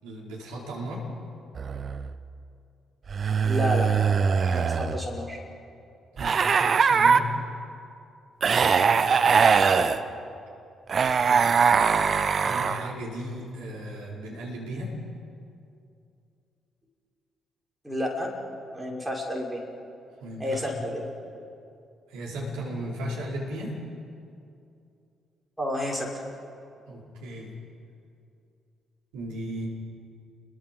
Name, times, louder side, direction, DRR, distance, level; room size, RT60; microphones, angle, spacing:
voice 1, 0.0-1.0 6.1-7.3 8.8-9.4 11.0-11.5 12.3-14.9 20.2-20.8 22.1-23.8 26.9-27.5 29.1-29.7, equal, 70° right, -4 dB, 5.1 m, -36 dB
sound 1, 1.6-2.1 3.1-5.0 6.2-7.2 8.4-10.0 10.9-12.9, right 6 dB, 45° right, 0.9 m, -22 dB
voice 2, 3.4-3.9 4.5-5.4 9.7-9.9 17.8-18.3 18.7-19.6 20.4-21.0 25.6-26.2, equal, 5° right, -2 dB, 6.1 m, -30 dB
29.0 x 22.5 x 5.5 m, 2.6 s
figure-of-eight pair, 40°, 0 cm